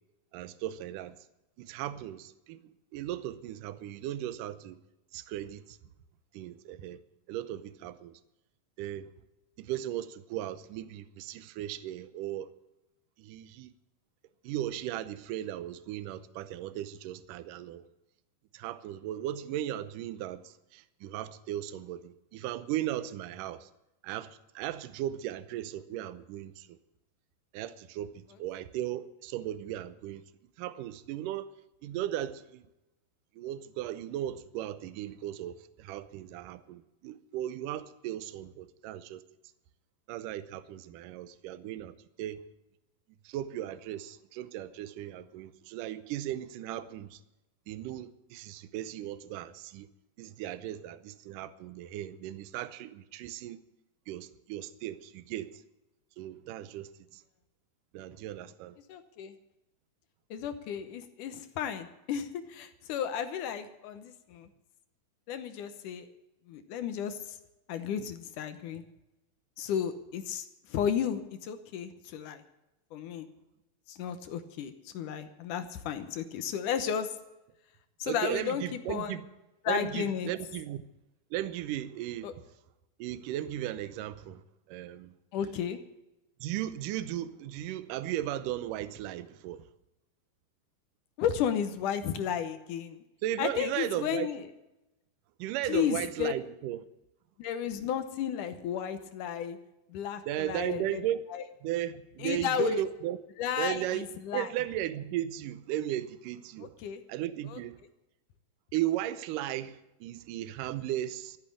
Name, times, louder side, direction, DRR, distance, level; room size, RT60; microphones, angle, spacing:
voice 1, 0.3-1.2 1.6-2.6 2.9-4.8 5.1-5.8 6.3-7.0 7.3-8.2 8.8-9.1 9.6-12.5 13.2-13.7 14.4-17.9 18.5-23.7 24.0-26.8 27.5-30.2 30.6-31.5 31.8-32.7 33.4-39.2 40.1-42.5 43.2-47.2 47.7-49.9 50.2-53.6 54.1-55.6 56.2-57.2 57.9-58.8 78.1-79.3 79.7-80.8 81.3-82.4 83.0-84.4 84.7-85.1 86.4-89.7 93.2-94.3 95.4-96.9 100.3-101.2 101.6-103.2 103.6-104.1 104.3-106.7 107.1-107.8 108.7-111.4, right 12 dB, 75° right, 2.3 m, -36 dB
voice 2, 58.9-59.4 60.3-64.5 65.3-66.1 66.5-67.4 67.7-68.8 69.6-72.4 72.9-73.3 73.9-77.2 78.0-79.2 79.6-80.3 82.2-82.3 85.3-85.8 91.2-93.0 93.4-94.4 95.7-96.3 97.4-99.6 99.9-101.0 101.3-101.4 102.2-102.8 103.4-104.5 106.6-107.0 107.5-107.6, left 8 dB, 70° left, 2.3 m, -33 dB
14.0 x 9.4 x 8.5 m
omnidirectional pair, 4.1 m